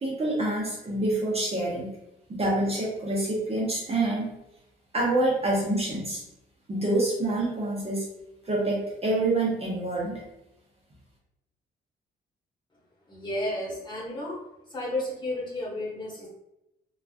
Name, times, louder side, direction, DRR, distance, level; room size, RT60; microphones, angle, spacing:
voice 1, 0.0-1.9 2.3-4.3 4.9-6.2 6.7-8.0 8.4-10.1, right 2 dB, 30° right, -5 dB, 0.8 m, -26 dB
voice 2, 13.1-14.4 14.7-16.3, left 1 dB, 20° left, -6 dB, 1.1 m, -32 dB
3.0 x 2.3 x 2.4 m, 0.89 s
cardioid pair, 90°, 20 cm